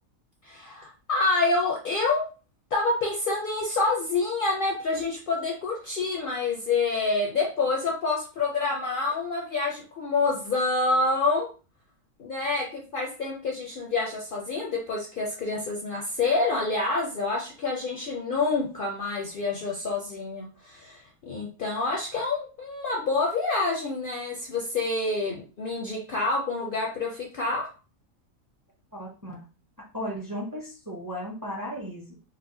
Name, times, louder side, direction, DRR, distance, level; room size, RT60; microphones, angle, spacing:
voice 1, 0.4-2.3 2.7-11.5 12.2-27.7, left 3 dB, 55° left, -1 dB, 0.6 m, -27 dB
voice 2, 28.9-29.4 29.9-32.2, equal, 20° right, -2 dB, 0.6 m, -35 dB
4.2 x 2.1 x 2.7 m, 0.34 s
omnidirectional pair, 1.4 m